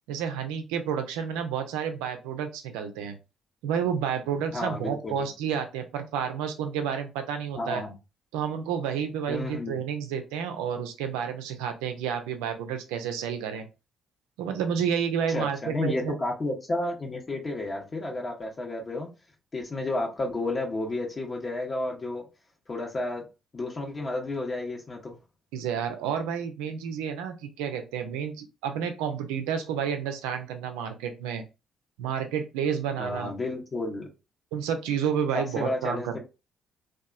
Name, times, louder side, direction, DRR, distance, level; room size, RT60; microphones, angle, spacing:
voice 1, 0.1-3.2 3.6-7.8 8.3-13.7 14.4-16.1 25.5-31.4 32.0-33.3 34.5-36.2, right 8 dB, 80° right, 0.4 m, -30 dB
voice 2, 4.5-5.3 7.5-7.9 9.3-9.8 15.3-19.1 19.5-22.2 22.7-23.2 23.5-25.2 33.0-34.1 35.6-36.2, left 2 dB, 40° left, 0.9 m, -31 dB
2.8 x 2.3 x 2.3 m
hypercardioid pair, 50°, 0 cm